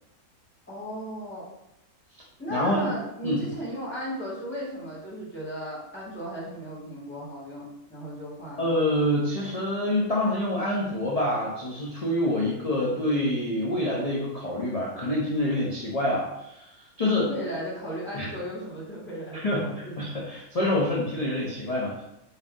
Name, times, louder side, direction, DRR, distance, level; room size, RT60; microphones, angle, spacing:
voice 1, 0.7-1.4 2.4-8.7 17.1-19.9, equal, 10° left, -8 dB, 1.2 m, -36 dB
voice 2, 2.5-2.9 3.2-3.4 8.6-16.7 17.0-17.3 18.1-18.3 19.3-22.0, left 1 dB, 55° left, -5 dB, 0.4 m, -26 dB
4.0 x 2.6 x 3.6 m, 0.86 s
omnidirectional pair, 1.5 m